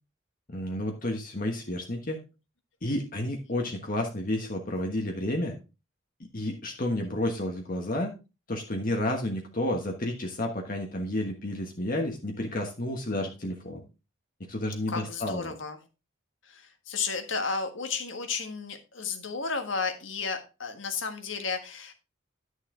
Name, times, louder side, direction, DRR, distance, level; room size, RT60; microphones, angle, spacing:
voice 1, 0.5-2.2 2.8-5.6 6.3-8.1 8.5-13.8 14.5-15.5, left 1 dB, 45° left, 2 dB, 1.4 m, -31 dB
voice 2, 14.9-15.8 16.5-21.9, left 5 dB, 70° left, 6 dB, 1.6 m, -33 dB
11.0 x 6.4 x 3.8 m, 0.29 s
head